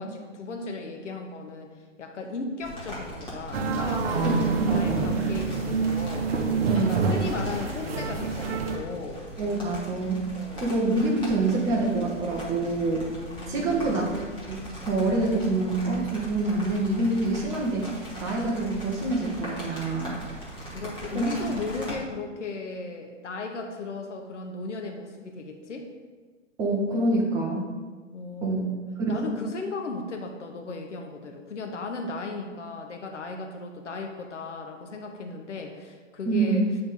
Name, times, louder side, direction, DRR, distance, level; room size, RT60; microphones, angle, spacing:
voice 1, 0.0-1.7 2.0-4.3 4.7-6.3 6.8-9.2 10.3-10.6 13.0-13.9 20.7-25.9 28.1-28.8 29.1-36.7, left 3 dB, 70° left, 3 dB, 0.9 m, -36 dB
sound 1, 2.6-22.0, equal, 15° left, 1.5 m, -40 dB
sound 2, 3.5-8.8, right 4 dB, 50° right, 0.9 m, -26 dB
voice 2, 4.2-5.1 6.6-7.1 9.4-10.2 10.6-13.1 13.5-14.2 14.5-17.9 18.2-20.2 21.1-21.3 26.6-27.7 28.4-28.7 29.1-29.3 36.3-36.7, right 2 dB, 10° right, -1 dB, 0.5 m, -26 dB
8.7 x 3.8 x 3.9 m, 1.4 s
figure-of-eight pair, 115°, 37 cm